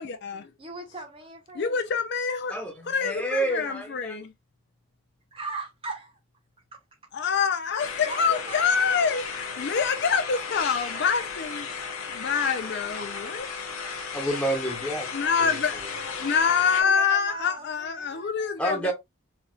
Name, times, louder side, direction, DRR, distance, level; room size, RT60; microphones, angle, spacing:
voice 1, 0.0-0.5 1.6-2.5 2.9-4.3 7.1-11.7 12.1-13.5 15.1-15.8 16.2-18.9, left 6 dB, 50° left, 0.4 m, -26 dB
voice 2, 0.6-1.8 5.3-6.1 7.7-9.3 16.7-18.7, right 3 dB, 25° right, 0.7 m, -39 dB
voice 3, 2.5-4.2 14.1-15.1 15.4-15.6 18.6-18.9, right 1 dB, 5° left, 1.4 m, -29 dB
sound 1, 7.8-16.8, left 5 dB, 75° left, 0.8 m, -34 dB
4.1 x 2.8 x 2.3 m
head